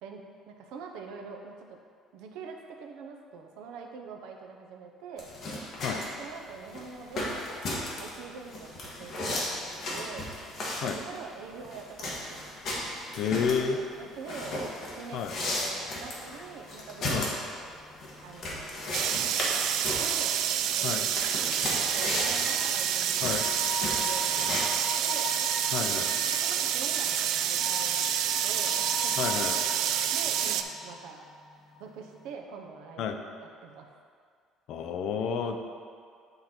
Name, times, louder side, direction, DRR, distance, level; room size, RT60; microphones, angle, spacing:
voice 1, 0.0-1.8 2.1-5.3 6.2-7.6 8.0-9.6 9.9-10.3 10.8-12.5 13.2-14.6 15.0-17.3 18.2-20.4 20.7-21.0 21.3-23.4 23.7-25.3 26.3-28.1 28.4-29.1 30.1-31.3 31.8-33.0 33.6-34.0, right 5 dB, 90° right, 2 dB, 0.8 m, -44 dB
sound 1, 5.2-24.6, left 1 dB, 40° left, 1.4 m, -35 dB
voice 2, 13.2-13.8 15.1-15.3 17.1-17.3 20.8-21.0 23.2-23.4 25.7-26.1 29.2-29.5 33.0-33.2 34.7-35.6, left 6 dB, 55° left, 5 dB, 0.5 m, -30 dB
sound 2, 16.4-32.3, left 2 dB, 5° left, 0.7 m, -42 dB
sound 3, 18.9-30.6, right 10 dB, 60° right, 0.3 m, -28 dB
9.1 x 3.9 x 4.4 m, 2.2 s
cardioid pair, 165°, 0 cm